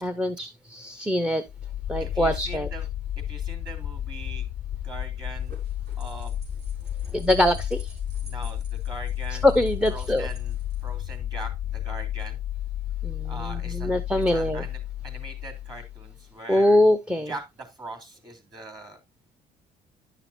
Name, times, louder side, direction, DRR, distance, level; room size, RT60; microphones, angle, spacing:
voice 1, 0.0-1.4 1.9-2.7 7.1-7.9 9.4-10.3 13.0-14.6 16.5-17.3, left 1 dB, 5° right, 0.7 m, -23 dB
sound 1, 1.5-16.3, left 11 dB, 35° left, 0.4 m, -32 dB
voice 2, 2.0-2.8 3.2-4.5 4.8-5.6 6.0-6.4 8.2-9.5 9.9-10.5 10.8-12.4 13.2-13.9 14.3-16.8 17.3-19.0, right 2 dB, 25° right, 3.0 m, -41 dB
sound 2, 5.2-11.2, right 2 dB, 75° right, 4.3 m, -50 dB
11.0 x 5.8 x 2.6 m
cardioid pair, 110°, 17 cm